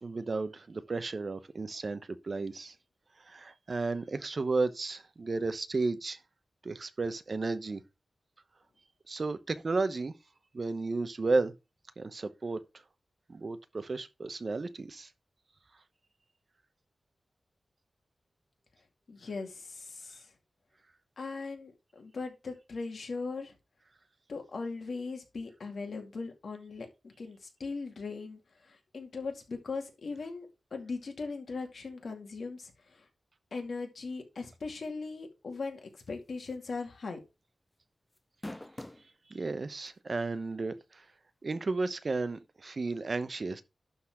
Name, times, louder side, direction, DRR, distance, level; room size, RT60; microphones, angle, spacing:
voice 1, 0.0-2.7 3.2-6.2 6.6-7.8 9.1-10.1 10.5-11.5 12.0-12.6 13.3-15.1 39.3-41.0 41.4-43.6, right 3 dB, 45° right, 0.8 m, -33 dB
voice 2, 19.1-20.3 21.2-23.5 24.3-33.1 33.5-37.2, left 4 dB, 65° left, 2.3 m, -39 dB
sound 1, 36.5-36.7 37.0-37.1 38.2-39.1 39.9-40.0 41.5-41.6, left 1 dB, 15° left, 0.4 m, -42 dB
11.5 x 4.1 x 4.8 m
wide cardioid pair, 120°, 0 cm